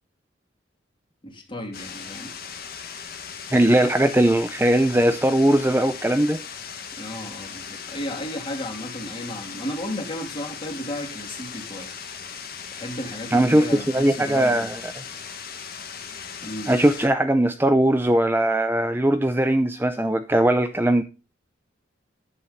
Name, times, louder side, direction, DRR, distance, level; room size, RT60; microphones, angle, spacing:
voice 1, 1.2-2.3 7.0-11.9 12.7-14.7 16.4-16.7, left 1 dB, 25° left, 2.9 m, -34 dB
sound 1, 1.7-17.1, left 6 dB, 50° left, 1.7 m, -38 dB
voice 2, 3.5-6.4 13.3-14.8 16.7-21.0, right 1 dB, 10° right, 0.6 m, -20 dB
11.0 x 8.5 x 4.0 m
head